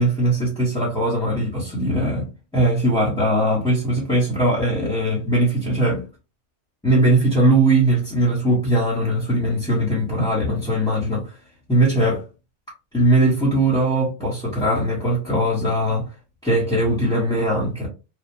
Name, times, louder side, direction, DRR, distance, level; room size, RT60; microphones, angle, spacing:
voice 1, 0.0-6.1 6.8-11.4 11.7-12.2 12.9-16.1 16.4-17.9, right 1 dB, 5° left, 1.0 m, -20 dB
3.4 x 2.3 x 2.8 m
omnidirectional pair, 1.2 m